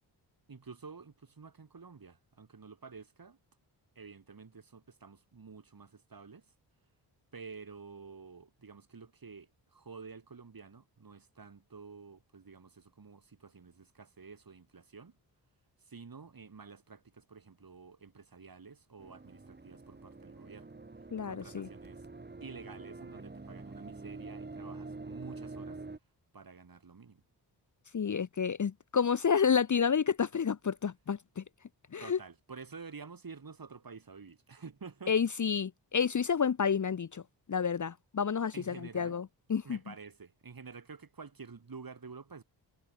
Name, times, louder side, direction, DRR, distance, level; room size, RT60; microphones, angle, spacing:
voice 1, 0.5-3.4 4.0-6.5 7.3-15.1 15.8-20.7 21.2-22.1 22.4-25.8 26.3-27.2 32.0-35.1 38.5-39.2 39.6-42.4, right 5 dB, 50° right, 7.9 m, -50 dB
sound 1, 19.0-26.0, right 3 dB, 20° right, 2.0 m, -46 dB
voice 2, 21.1-21.7 27.9-31.4 31.9-32.2 35.1-37.2 37.5-39.8, left 6 dB, 40° left, 1.0 m, -30 dB
supercardioid pair, 45°, 46 cm